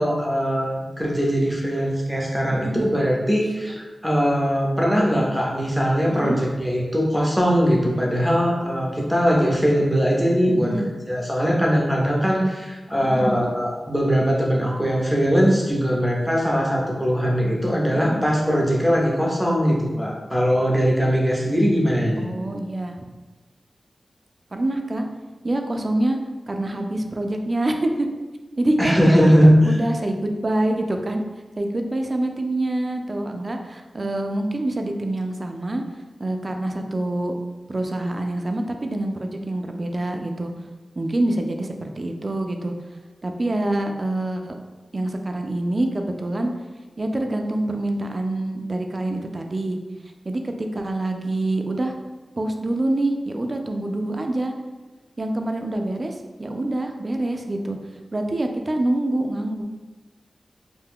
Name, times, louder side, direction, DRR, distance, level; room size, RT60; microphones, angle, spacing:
voice 1, 0.0-10.8 11.1-22.3 28.8-29.8, equal, ahead, -2 dB, 0.7 m, -20 dB
voice 2, 2.5-2.9 6.1-6.4 10.5-10.9 13.0-13.4 17.9-18.2 22.2-23.0 24.5-25.1 25.4-26.2 26.5-28.1 28.6-29.3 29.6-31.2 31.6-35.8 36.2-37.3 37.7-40.5 41.0-42.7 43.2-44.5 44.9-46.5 47.0-49.8 50.2-51.9 52.4-54.5 55.2-57.8 58.1-59.6, right 1 dB, 45° right, 4 dB, 0.3 m, -26 dB
2.6 x 2.3 x 3.5 m, 1.2 s
cardioid pair, 55°, 0 cm